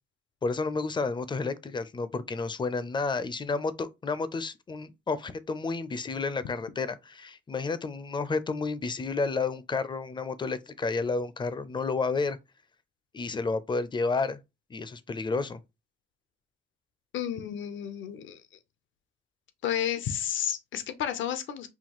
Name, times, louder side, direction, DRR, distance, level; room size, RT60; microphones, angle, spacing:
voice 1, 0.4-12.4 13.1-14.4 14.7-15.6, left 4 dB, 25° left, 0.5 m, -31 dB
voice 2, 17.1-18.4 19.6-21.7, left 10 dB, 75° left, 0.7 m, -31 dB
5.8 x 2.3 x 3.0 m
cardioid pair, 90°, 20 cm